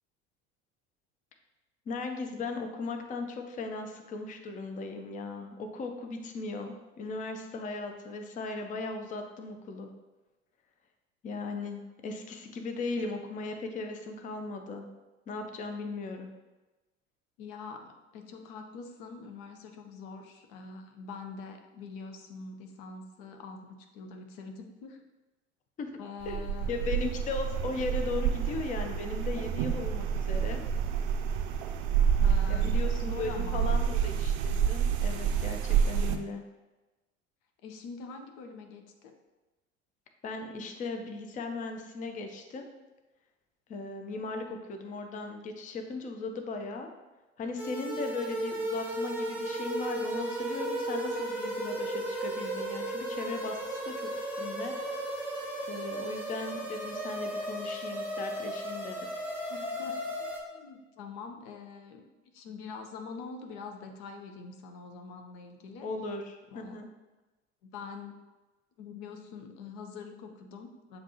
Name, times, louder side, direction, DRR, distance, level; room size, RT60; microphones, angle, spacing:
voice 1, 1.9-9.9 11.2-14.9 15.3-16.3 25.8-25.9 26.3-26.4 26.7-30.6 32.5-36.4 40.2-42.7 43.7-46.9 47.4-54.7 55.7-59.1 65.8-66.9, left 3 dB, 20° left, 5 dB, 0.5 m, -37 dB
voice 2, 17.4-25.0 26.0-27.0 32.2-33.7 37.6-39.1 59.5-62.1 62.3-65.9 66.5-66.8 67.6-68.1 68.8-71.0, left 4 dB, 55° left, 5 dB, 0.7 m, -44 dB
sound 1, 26.2-36.2, right 7 dB, 55° right, 0.5 m, -28 dB
sound 2, 47.6-60.4, right 1 dB, 5° right, 0.9 m, -35 dB
6.9 x 2.7 x 2.8 m, 1.1 s
figure-of-eight pair, 70°, 38 cm